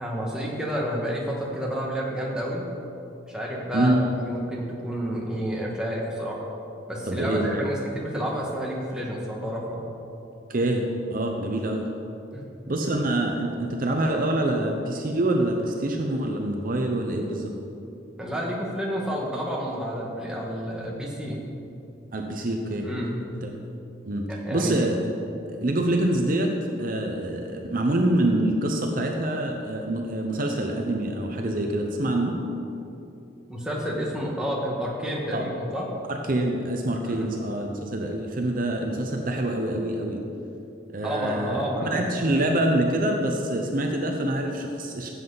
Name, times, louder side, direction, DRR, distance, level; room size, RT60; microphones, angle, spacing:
voice 1, 0.0-2.6 3.3-6.4 6.9-9.9 12.3-12.6 18.2-21.4 22.8-23.1 24.3-24.8 33.5-35.9 37.1-37.3 41.0-42.1, equal, 5° right, -4 dB, 1.6 m, -30 dB
voice 2, 7.1-7.6 10.5-11.9 12.7-17.5 22.1-22.9 23.4-23.5 24.0-25.1 25.6-26.5 26.8-32.4 35.3-35.5 36.1-40.2 40.9-45.1, right 1 dB, 45° right, 2 dB, 0.8 m, -26 dB
15.5 x 7.8 x 4.0 m, 2.8 s
head